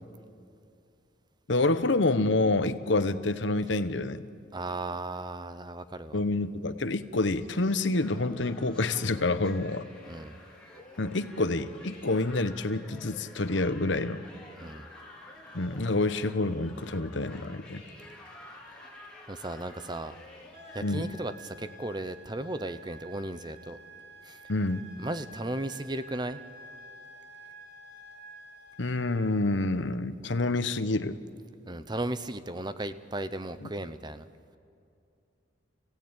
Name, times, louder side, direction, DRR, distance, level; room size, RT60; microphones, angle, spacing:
voice 1, 1.5-4.2 6.1-9.8 11.0-14.2 15.5-17.8 20.8-21.0 24.5-24.9 28.8-31.2 33.6-33.7, left 2 dB, 70° left, 11 dB, 1.0 m, -28 dB
voice 2, 4.5-6.2 10.1-10.4 14.6-14.9 19.3-20.2 20.7-23.8 24.2-24.4 25.0-26.4 31.6-34.2, right 1 dB, 20° right, 12 dB, 0.8 m, -35 dB
sound 1, 7.9-21.0, left 1 dB, 5° left, 3.0 m, -49 dB
sound 2, 20.5-29.4, equal, 55° right, 3.7 m, -50 dB
29.0 x 16.5 x 8.9 m, 2.6 s
head